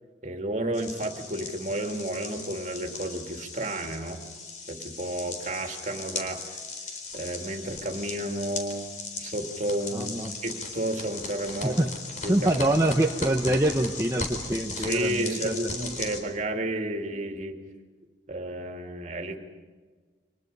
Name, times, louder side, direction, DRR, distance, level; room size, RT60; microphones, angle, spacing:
voice 1, 0.2-4.2 4.7-6.6 7.1-8.9 9.2-10.2 10.4-11.8 12.2-12.6 14.8-17.6 18.3-19.4, right 1 dB, 40° right, 4 dB, 2.6 m, -31 dB
sound 1, 0.7-16.2, left 3 dB, 40° left, 4.2 m, -38 dB
voice 2, 9.9-10.4 11.6-11.9 12.3-15.7, right 1 dB, 15° right, 0 dB, 1.0 m, -25 dB
29.5 x 26.0 x 5.5 m, 1.4 s
head